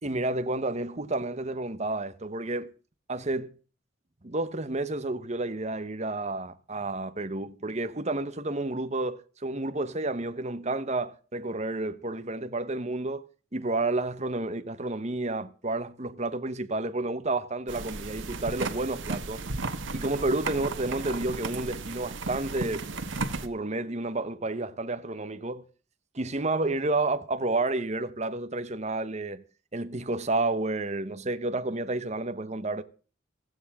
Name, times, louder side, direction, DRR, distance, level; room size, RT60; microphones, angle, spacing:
voice 1, 0.0-2.7 3.1-3.5 4.2-19.4 19.9-22.9 23.4-25.7 26.1-29.4 29.7-32.8, right 2 dB, 35° right, 1.2 m, -30 dB
sound 1, 17.7-23.5, right 3 dB, 85° right, 1.5 m, -34 dB
16.0 x 15.5 x 3.7 m
head